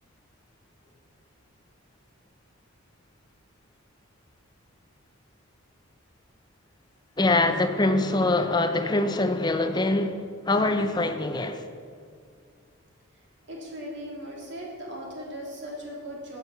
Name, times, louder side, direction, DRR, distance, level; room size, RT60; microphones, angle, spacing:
voice 1, 7.2-10.2 10.5-11.6, left 2 dB, 20° left, 0.6 m, -24 dB
voice 2, 13.5-16.4, equal, 55° right, 2.9 m, -38 dB
10.5 x 8.3 x 6.9 m
head